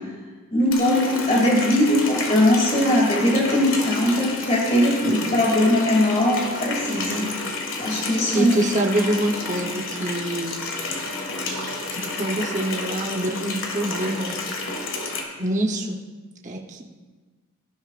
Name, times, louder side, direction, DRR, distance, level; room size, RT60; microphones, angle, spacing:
voice 1, 0.5-7.3 7.8-8.6, left 1 dB, 30° left, -3 dB, 2.5 m, -20 dB
Water tap faucet, 0.7-15.2, left 3 dB, 60° left, 1.8 m, -30 dB
voice 2, 8.0-10.6 11.5-14.4 15.4-16.0 16.4-16.8, right 1 dB, 35° right, 0 dB, 0.9 m, -26 dB
18.0 x 11.5 x 2.5 m, 1.4 s
head